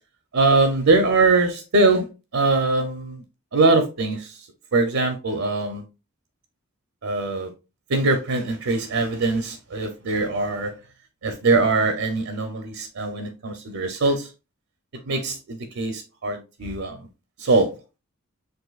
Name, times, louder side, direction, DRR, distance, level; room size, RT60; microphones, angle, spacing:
voice 1, 0.3-2.1 2.3-3.2 3.5-4.3 4.7-5.8 7.0-7.5 7.9-10.8 11.2-14.3 15.1-17.0 17.4-17.7, right 3 dB, 70° right, 0.7 m, -22 dB
6.4 x 2.6 x 2.4 m
head